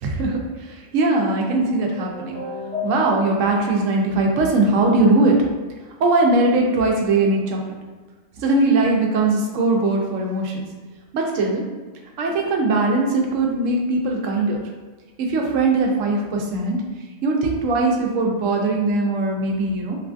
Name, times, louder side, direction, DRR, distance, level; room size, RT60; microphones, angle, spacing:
voice 1, 0.0-2.4 2.8-5.4 6.0-7.6 8.4-10.6 11.1-11.6 12.2-14.6 15.2-16.8 17.2-20.0, right 2 dB, 80° right, 0 dB, 0.9 m, -20 dB
sound 1, 1.6-3.6, left 3 dB, 65° left, 1.4 m, -32 dB
3.1 x 2.4 x 2.4 m, 1.4 s
omnidirectional pair, 1.3 m